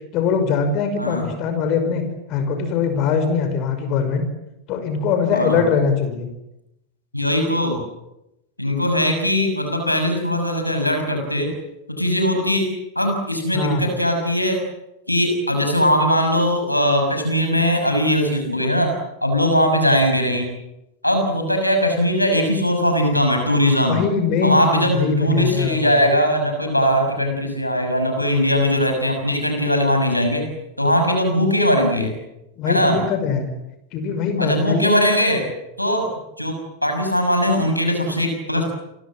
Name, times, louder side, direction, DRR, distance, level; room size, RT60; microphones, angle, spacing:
voice 1, 0.1-2.0 2.3-4.2 4.7-6.3 13.5-13.9 23.9-26.0 32.6-33.5 33.9-35.1, left 5 dB, 40° left, 7 dB, 5.8 m, -21 dB
voice 2, 7.1-7.8 8.6-11.5 11.9-12.7 12.9-14.6 15.1-18.9 19.2-20.5 21.0-24.0 24.4-30.4 30.8-32.1 32.7-33.0 34.4-35.4 35.8-36.1 36.4-38.6, equal, 85° left, 4 dB, 6.3 m, -20 dB
30.0 x 24.0 x 7.6 m, 0.89 s
figure-of-eight pair, 90°, 0 cm